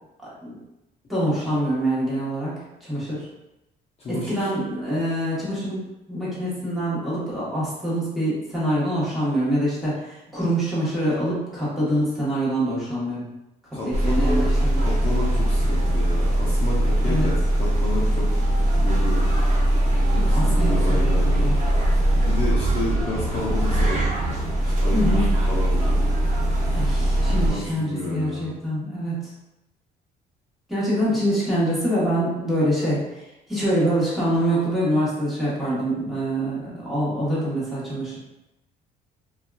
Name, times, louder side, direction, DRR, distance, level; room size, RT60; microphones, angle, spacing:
voice 1, 0.2-0.6 1.1-2.5 2.8-3.3 4.1-13.2 14.0-14.8 17.0-17.3 20.2-21.5 24.9-25.2 26.7-29.3 30.7-33.2 33.5-38.2, equal, ahead, -9 dB, 1.2 m, -25 dB
voice 2, 4.0-4.5 13.7-14.4 14.8-18.4 18.8-19.2 20.1-21.5 22.2-24.1 24.6-26.1 26.6-27.0 27.3-28.5, left 2 dB, 35° left, -6 dB, 0.6 m, -31 dB
sound 1, 13.9-27.5, right 1 dB, 45° right, 0.8 m, -21 dB
2.7 x 2.3 x 2.3 m, 0.93 s
cardioid pair, 110°, 17 cm